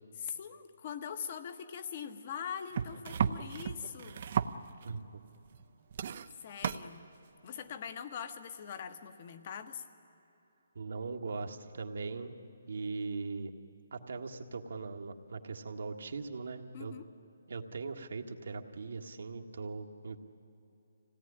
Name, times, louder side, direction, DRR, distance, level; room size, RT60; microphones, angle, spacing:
voice 1, 0.2-4.2 6.4-7.0 7.4-9.8 16.7-17.1, left 7 dB, 35° left, 9 dB, 1.3 m, -42 dB
sound 1, 2.7-5.0 5.5-5.6 5.9-6.8 7.9-8.0, right 7 dB, 45° right, 0.7 m, -34 dB
voice 2, 4.8-5.2 10.7-12.3 12.7-13.5 13.9-16.9 17.5-20.2, right 4 dB, 70° right, 3 dB, 1.6 m, -40 dB
25.0 x 17.5 x 10.0 m, 2.9 s
hypercardioid pair, 165°, 0 cm